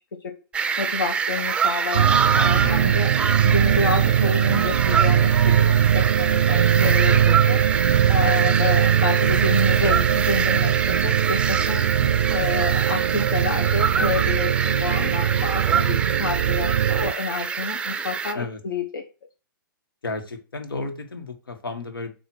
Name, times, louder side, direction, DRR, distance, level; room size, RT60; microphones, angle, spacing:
sound 1, 0.5-18.3, right 6 dB, 10° right, 0.5 m, -25 dB
voice 1, 0.8-3.1 3.4-7.6 8.1-11.8 12.3-19.0, left 4 dB, 70° left, 3 dB, 1.1 m, -29 dB
sound 2, 1.9-17.1, right 10 dB, 75° right, 0.4 m, -21 dB
voice 2, 2.6-3.1 6.8-7.2 12.0-12.5 18.3-18.6 20.0-22.1, left 3 dB, 90° left, 6 dB, 1.7 m, -34 dB
8.2 x 2.8 x 6.2 m, 0.34 s
hypercardioid pair, 140°, 11 cm